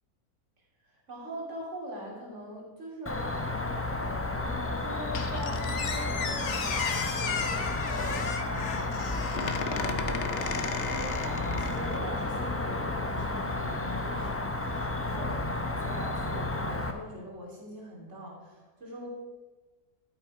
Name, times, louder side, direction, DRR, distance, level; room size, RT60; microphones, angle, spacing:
voice 1, 0.8-3.2 4.3-8.9 9.6-15.4 15.6-19.1, equal, 55° right, -3 dB, 3.3 m, -42 dB
Cricket, 3.1-16.9, left 2 dB, 15° left, 0.6 m, -32 dB
Squeak, 5.1-12.0, left 6 dB, 55° left, 1.1 m, -34 dB
12.0 x 9.0 x 4.8 m, 1.3 s
omnidirectional pair, 1.5 m